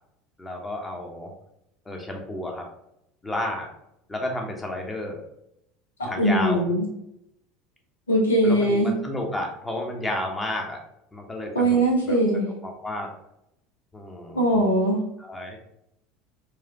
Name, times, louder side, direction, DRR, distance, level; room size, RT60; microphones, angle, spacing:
voice 1, 0.4-1.3 1.8-2.7 3.2-3.7 4.1-5.2 6.0-6.6 8.4-10.8 11.1-13.1 13.9-14.6 15.2-15.6, left 1 dB, 15° left, 2 dB, 1.0 m, -32 dB
voice 2, 6.0-6.9 8.1-9.0 11.5-12.5 14.3-15.0, right 1 dB, 75° left, 0 dB, 1.0 m, -21 dB
4.7 x 2.5 x 2.9 m, 0.79 s
figure-of-eight pair, 70°, 0 cm